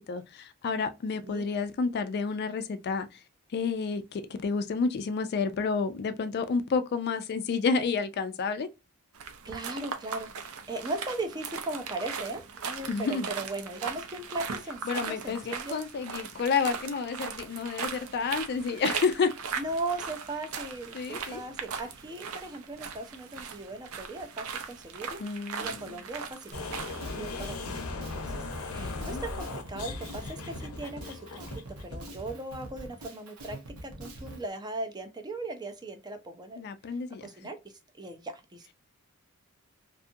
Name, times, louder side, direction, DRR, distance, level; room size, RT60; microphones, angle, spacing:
voice 1, 0.1-3.2 3.5-8.7 12.9-13.3 14.9-19.3 20.9-21.4 25.2-26.0 28.8-29.2 36.6-37.3, left 5 dB, 50° left, 0.3 m, -30 dB
sound 1, 9.1-27.0, right 6 dB, 70° right, 0.5 m, -39 dB
voice 2, 9.4-15.8 19.6-36.6 37.2-38.7, right 2 dB, 20° right, 0.4 m, -38 dB
sound 2, 26.5-32.0, left 3 dB, 80° left, 0.7 m, -38 dB
Drum kit, 26.5-34.5, right 2 dB, 90° right, 0.8 m, -45 dB
2.6 x 2.4 x 2.5 m
head